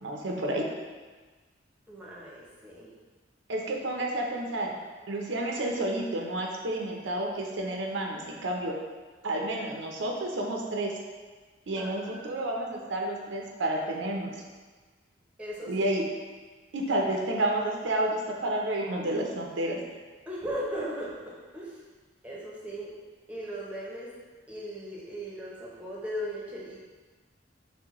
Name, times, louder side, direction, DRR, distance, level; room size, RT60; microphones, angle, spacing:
voice 1, 0.0-0.7 3.5-4.8 5.1-8.7 9.2-10.9 11.7-14.3 15.7-16.1 16.7-19.8, right 1 dB, 85° right, 0 dB, 0.6 m, -30 dB
voice 2, 1.9-2.9 11.8-12.3 15.4-15.8 20.3-21.8 22.2-22.9 23.3-24.1 24.5-26.8, equal, 5° right, -6 dB, 0.7 m, -37 dB
6.0 x 2.2 x 3.0 m, 1.4 s
head